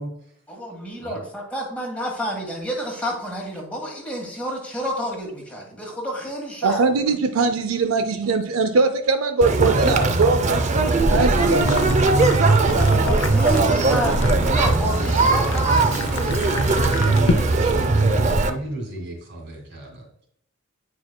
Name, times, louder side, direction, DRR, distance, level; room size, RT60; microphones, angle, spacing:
voice 1, 0.6-6.8 12.5-16.4, equal, 5° left, -1 dB, 1.6 m, -30 dB
voice 2, 6.6-10.7 11.1-11.8, right 4 dB, 85° right, 8 dB, 0.5 m, -21 dB
Conversation, 9.4-18.5, right 3 dB, 35° right, 0.4 m, -19 dB
voice 3, 11.4-13.0 13.8-15.4 16.4-20.3, right 1 dB, 55° right, 0 dB, 2.3 m, -33 dB
sound 1, 11.6-18.0, left 3 dB, 70° left, 0.6 m, -31 dB
9.3 x 4.7 x 2.2 m, 0.69 s
head